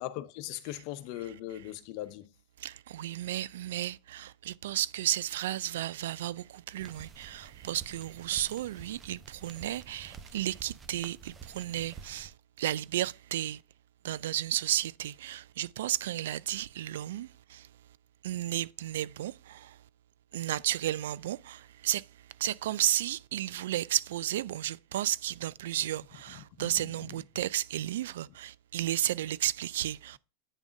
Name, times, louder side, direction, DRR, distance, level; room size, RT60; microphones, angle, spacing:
voice 1, 0.0-2.3 26.6-26.9, left 14 dB, 55° left, 0.8 m, -39 dB
voice 2, 2.6-12.3 12.6-13.6 14.0-17.7 18.2-19.8 20.3-22.0 22.4-30.2, right 13 dB, 75° right, 0.4 m, -33 dB
sound 1, 6.8-12.3, right 6 dB, 20° right, 0.9 m, -50 dB
9.0 x 3.6 x 5.2 m
supercardioid pair, 130°, 0 cm